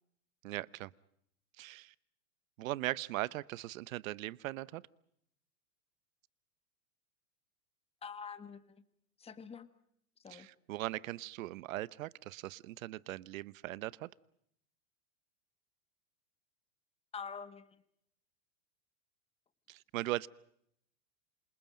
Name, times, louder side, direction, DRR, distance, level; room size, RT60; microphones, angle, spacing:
voice 1, 0.4-0.9 1.6-1.9 2.6-4.8 10.3-14.1 19.7-20.3, right 17 dB, 70° right, 1.0 m, -39 dB
voice 2, 8.0-8.6 9.2-9.7 10.2-10.5 17.1-17.7, left 6 dB, 15° left, 1.5 m, -45 dB
28.0 x 27.5 x 5.2 m
hypercardioid pair, 120°, 43 cm